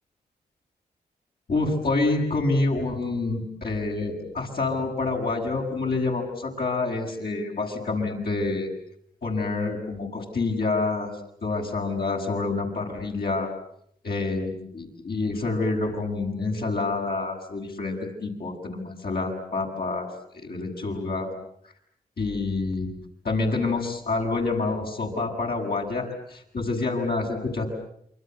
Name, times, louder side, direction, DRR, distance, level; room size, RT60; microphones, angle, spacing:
voice 1, 1.5-8.7 9.2-11.1 11.4-13.5 14.0-20.1 20.3-21.3 22.2-22.9 23.2-27.7, left 3 dB, 70° left, -1 dB, 7.9 m, -27 dB
28.5 x 24.5 x 8.1 m, 0.69 s
cardioid pair, 50°, 17 cm